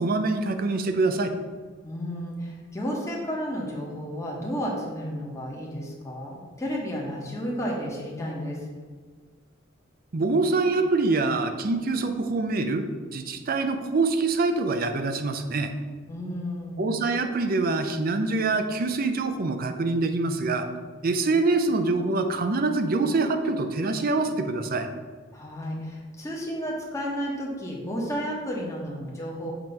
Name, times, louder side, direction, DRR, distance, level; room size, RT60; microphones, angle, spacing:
voice 1, 0.0-1.3 10.1-12.9 13.1-15.7 16.8-20.7 21.0-24.9, right 3 dB, 45° right, 7 dB, 0.5 m, -25 dB
voice 2, 1.8-8.6 16.1-16.9 25.3-29.5, equal, 15° left, -3 dB, 1.1 m, -32 dB
7.4 x 3.0 x 5.3 m, 1.5 s
head